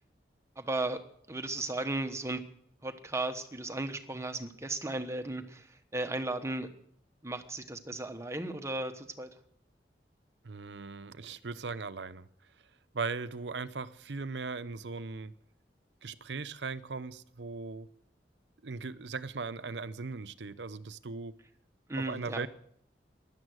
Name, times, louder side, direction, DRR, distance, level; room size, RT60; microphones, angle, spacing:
voice 1, 0.6-1.0 1.3-2.4 2.8-5.7 5.9-6.7 7.2-9.3 21.9-22.5, right 2 dB, 15° right, 1.1 m, -35 dB
voice 2, 10.4-12.3 12.9-15.3 16.0-17.9 18.6-21.3 22.1-22.5, right 4 dB, 80° right, 0.7 m, -38 dB
16.0 x 11.5 x 6.4 m
head